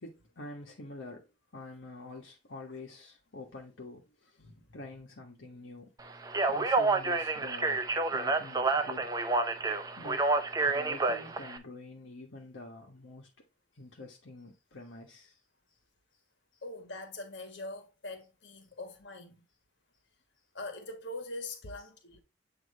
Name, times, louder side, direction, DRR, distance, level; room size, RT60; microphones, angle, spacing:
voice 1, 0.0-4.4 4.7-5.9 6.5-9.2 10.0-13.3 13.7-15.4, left 2 dB, 85° left, 1.2 m, -47 dB
voice 2, 4.4-4.8 16.6-19.4 20.5-22.2, left 2 dB, 70° left, 1.5 m, -43 dB
Speech, 6.2-11.6, right 3 dB, 20° right, 0.5 m, -29 dB
8.3 x 2.9 x 4.1 m
head